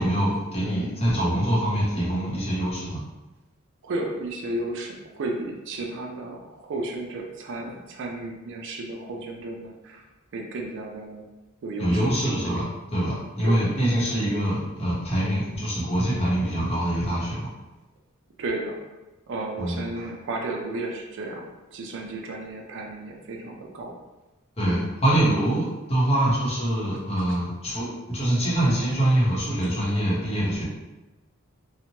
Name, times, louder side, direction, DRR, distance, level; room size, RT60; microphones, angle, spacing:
voice 1, 0.0-3.0 11.8-12.7 12.9-17.5 19.6-19.8 24.6-30.6, right 1 dB, 30° left, -7 dB, 0.8 m, -24 dB
voice 2, 3.8-10.0 10.3-11.2 11.6-12.7 13.4-13.6 18.4-18.8 19.3-24.0 24.6-24.9 27.2-27.4, right 2 dB, 60° right, 1 dB, 0.4 m, -33 dB
2.9 x 2.1 x 2.7 m, 1.1 s
head